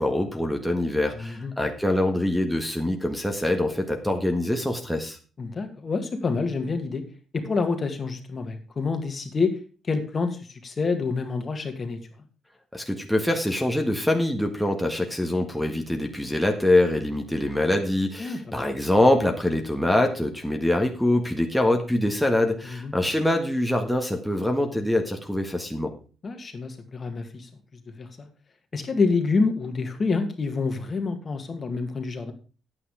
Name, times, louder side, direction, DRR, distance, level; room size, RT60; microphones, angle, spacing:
voice 1, 0.0-5.2 12.7-25.9, left 1 dB, ahead, 2 dB, 1.6 m, -24 dB
voice 2, 1.1-1.5 5.4-7.0 7.3-9.6 9.8-12.0 18.2-18.7 22.6-23.0 26.2-28.3 28.7-32.3, left 4 dB, 40° left, 6 dB, 2.0 m, -27 dB
9.8 x 8.7 x 4.9 m, 0.36 s
cardioid pair, 90°, 0 cm